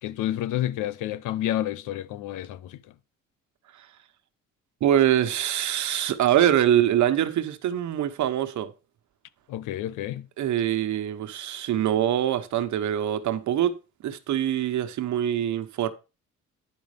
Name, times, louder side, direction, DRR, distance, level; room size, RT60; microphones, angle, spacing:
voice 1, 0.0-2.8 9.5-10.3, left 13 dB, 90° left, 0.7 m, -29 dB
voice 2, 4.8-8.7 10.4-13.7 14.0-15.9, right 11 dB, 70° right, 1.1 m, -24 dB
10.0 x 5.3 x 5.0 m
cardioid pair, 90°, 30 cm